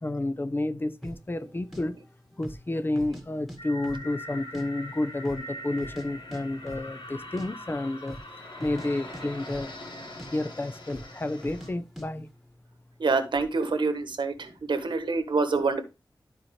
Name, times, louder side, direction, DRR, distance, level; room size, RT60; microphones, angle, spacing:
voice 1, 0.0-2.0 2.4-8.2 8.6-9.7 10.3-12.3, left 2 dB, 25° left, 0.7 m, -30 dB
sound 1, 1.0-1.2 1.7-1.8 2.3-2.7 2.9-3.6 3.8-4.6 4.9-5.0 5.2-6.1 6.3-6.4 6.7-6.9 7.2-7.5 8.0-8.3 8.6-9.9 10.2-10.3 10.9-11.1 11.4-11.7 12.0-12.1, equal, ahead, 1.7 m, -41 dB
sound 2, 3.6-11.7, left 1 dB, 80° left, 1.7 m, -42 dB
voice 2, 13.0-15.8, right 4 dB, 85° right, 1.3 m, -26 dB
12.5 x 4.3 x 3.2 m
wide cardioid pair, 90°, 8 cm